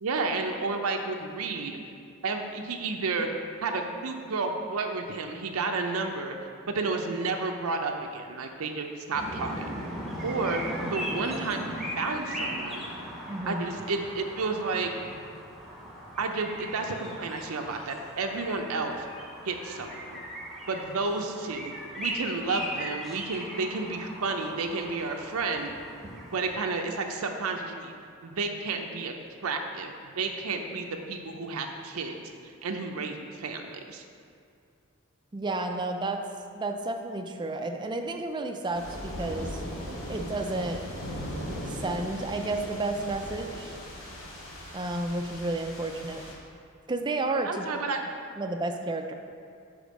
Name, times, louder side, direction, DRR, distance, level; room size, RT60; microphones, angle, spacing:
voice 1, 0.0-1.8 2.2-3.3 3.6-6.3 6.6-9.7 10.2-12.8 13.5-14.9 16.2-19.1 19.4-20.2 20.7-25.7 26.3-27.9 28.2-29.1 29.4-32.2 32.6-33.6 33.9-34.0 47.4-48.0, right 3 dB, 85° right, 4 dB, 0.6 m, -31 dB
sound 1, 9.1-26.5, equal, ahead, 1.1 m, -38 dB
voice 2, 13.3-13.6 35.3-36.2 36.5-39.6 40.1-40.9 41.7-43.8 44.7-46.2 46.9-47.7 48.4-49.1, right 2 dB, 20° right, 5 dB, 0.4 m, -31 dB
sound 2, 38.7-46.3, equal, 75° left, 1.3 m, -38 dB
5.1 x 5.0 x 6.2 m, 2.4 s
head